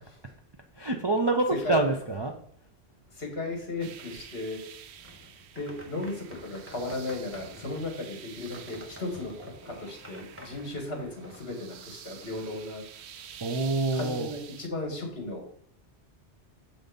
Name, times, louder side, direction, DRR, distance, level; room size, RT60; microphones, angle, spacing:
voice 1, 0.7-2.3 13.4-14.3, right 2 dB, 35° right, 3 dB, 0.4 m, -26 dB
voice 2, 3.1-4.6 5.5-12.8 13.9-15.4, left 2 dB, 65° left, 1 dB, 2.2 m, -35 dB
sound 1, 3.8-14.7, right 9 dB, 75° right, 0.8 m, -49 dB
sound 2, 5.0-11.4, equal, 15° right, 1.0 m, -49 dB
7.2 x 3.9 x 5.2 m, 0.65 s
omnidirectional pair, 1.1 m